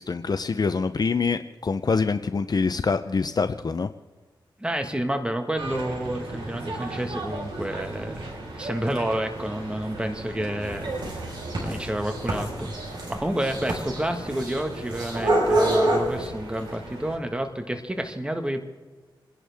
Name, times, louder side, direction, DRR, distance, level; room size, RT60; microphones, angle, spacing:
voice 1, 0.0-3.9, left 4 dB, 50° left, 9 dB, 0.6 m, -25 dB
voice 2, 4.6-12.7 13.1-18.6, right 1 dB, 10° right, 5 dB, 1.5 m, -30 dB
sound 1, 5.6-17.2, right 2 dB, 90° right, 3.3 m, -38 dB
sound 2, 10.6-16.3, right 1 dB, 60° right, 5.0 m, -26 dB
29.0 x 11.0 x 3.5 m, 1.3 s
cardioid pair, 70°, 9 cm